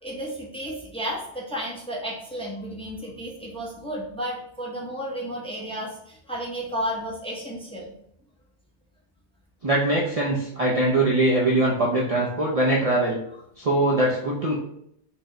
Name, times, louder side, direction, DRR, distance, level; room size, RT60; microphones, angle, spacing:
voice 1, 0.0-7.9, equal, 5° left, -4 dB, 0.7 m, -32 dB
voice 2, 9.6-13.2 13.6-14.5, right 1 dB, 40° right, -4 dB, 0.5 m, -22 dB
4.5 x 2.1 x 3.8 m, 0.71 s
omnidirectional pair, 1.1 m